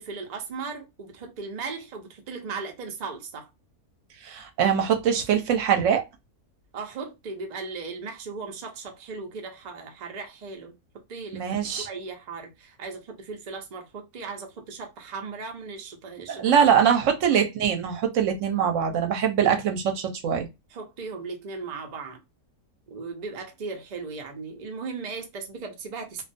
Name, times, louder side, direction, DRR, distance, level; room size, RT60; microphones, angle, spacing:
voice 1, 0.0-3.5 6.7-10.8 11.1-16.4 16.8-16.9 20.7-22.2 22.9-26.2, right 4 dB, 85° right, 0.3 m, -37 dB
voice 2, 4.2-6.0 11.3-11.9 16.3-20.5, right 8 dB, 65° right, 0.9 m, -23 dB
2.4 x 2.3 x 2.4 m
omnidirectional pair, 1.6 m